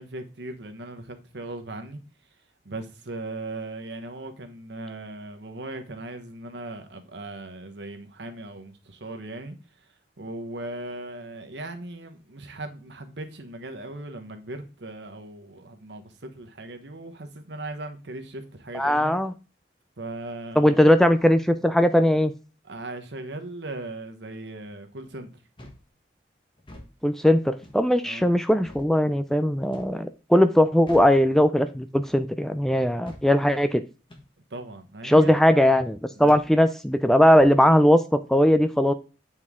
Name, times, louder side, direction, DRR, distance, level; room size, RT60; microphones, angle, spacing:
voice 1, 0.0-2.0 2.6-9.5 9.8-9.9 10.2-19.1 20.0-20.8 22.6-25.3 28.0-28.3 34.5-35.4 36.1-36.4, right 2 dB, 75° right, 1.1 m, -38 dB
voice 2, 18.7-19.3 20.6-22.3 27.0-33.8 35.0-38.9, equal, ahead, 0.3 m, -19 dB
sound 1, 25.6-25.9 26.6-26.9 27.6-27.9 28.6-28.9 29.7-30.0 30.9-31.2 32.0-32.3 33.1-33.3 34.1-34.3 35.3-35.5 36.3-36.5 37.3-37.6, left 1 dB, 25° left, 1.3 m, -45 dB
8.2 x 4.4 x 3.6 m
head